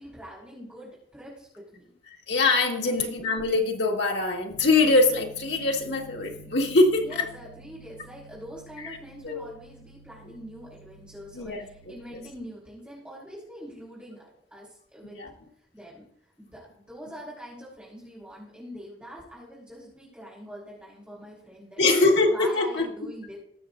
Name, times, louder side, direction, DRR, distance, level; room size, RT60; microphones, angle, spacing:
voice 1, 0.0-1.9 2.9-3.1 7.0-15.2 15.7-21.8 22.3-23.4, equal, 5° right, -7 dB, 3.5 m, -44 dB
voice 2, 2.3-7.3 9.2-9.5 11.3-11.7 15.1-15.3 21.8-22.8, left 3 dB, 85° left, 0 dB, 1.7 m, -23 dB
sound 1, 4.5-12.3, right 1 dB, 40° left, 1.0 m, -50 dB
20.5 x 6.8 x 2.6 m, 0.71 s
head